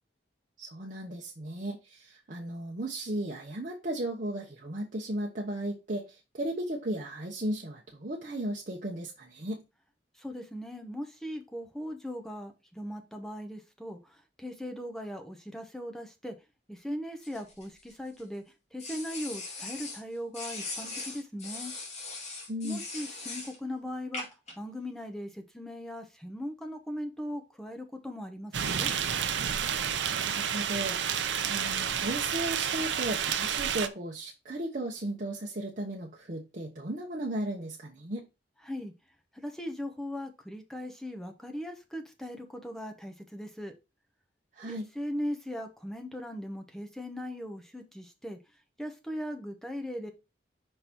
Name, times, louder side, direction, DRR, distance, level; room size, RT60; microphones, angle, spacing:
voice 1, 0.6-9.6 22.5-22.8 30.1-38.3 44.5-44.9, right 1 dB, 45° right, 0.9 m, -35 dB
voice 2, 10.1-16.3 16.7-18.4 18.7-21.7 22.6-24.3 24.6-28.9 38.6-38.9 39.3-43.7 44.6-48.4 48.8-50.1, equal, 5° left, 0.9 m, -39 dB
sound 1, 17.2-18.2 18.8-20.0 20.3-23.6 24.1-24.5, left 3 dB, 40° left, 2.2 m, -40 dB
sound 2, 28.5-33.9, right 8 dB, 80° right, 0.6 m, -30 dB
5.4 x 3.9 x 4.4 m
head